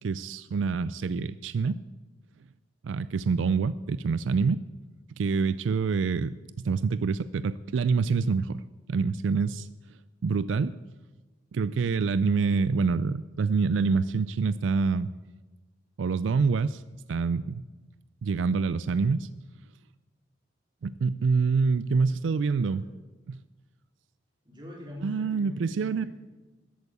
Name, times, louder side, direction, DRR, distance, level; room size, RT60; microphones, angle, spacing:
voice 1, 0.0-1.8 2.8-4.6 5.2-8.6 8.9-9.7 10.2-10.7 11.5-15.1 16.0-16.8 17.1-17.7 18.2-19.3 20.8-22.8 23.3-23.4 25.0-26.0, right 4 dB, 80° right, 15 dB, 0.4 m, -26 dB
voice 2, 22.6-22.9 24.4-26.1, left 1 dB, 25° right, -2 dB, 4.0 m, -43 dB
14.0 x 8.3 x 8.3 m, 1.2 s
head